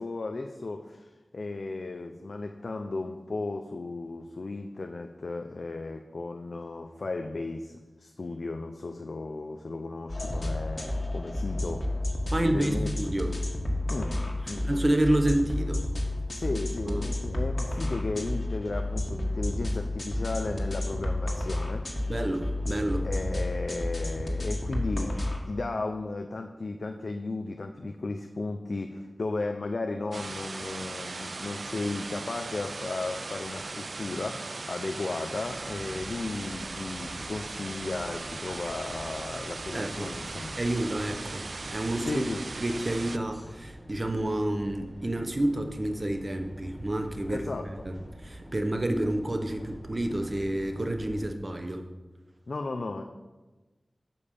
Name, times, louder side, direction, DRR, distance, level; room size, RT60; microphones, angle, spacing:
voice 1, 0.0-11.9 12.4-12.9 13.9-14.7 16.3-21.9 23.0-40.6 42.1-42.4 47.3-47.7 52.5-53.0, left 3 dB, 70° left, 5 dB, 0.6 m, -35 dB
sound 1, 10.1-25.4, left 1 dB, 45° left, 1.6 m, -31 dB
voice 2, 12.3-13.4 14.6-15.9 16.5-16.6 16.9-17.0 22.1-23.1 39.7-40.1 40.6-42.2 42.6-51.8, right 1 dB, 40° right, 5 dB, 1.0 m, -29 dB
sound 2, 30.1-43.2, right 3 dB, 65° right, 0.3 m, -38 dB
sound 3, 35.4-51.3, equal, ahead, 1.4 m, -46 dB
8.6 x 5.4 x 6.9 m, 1.2 s
wide cardioid pair, 60°, 0 cm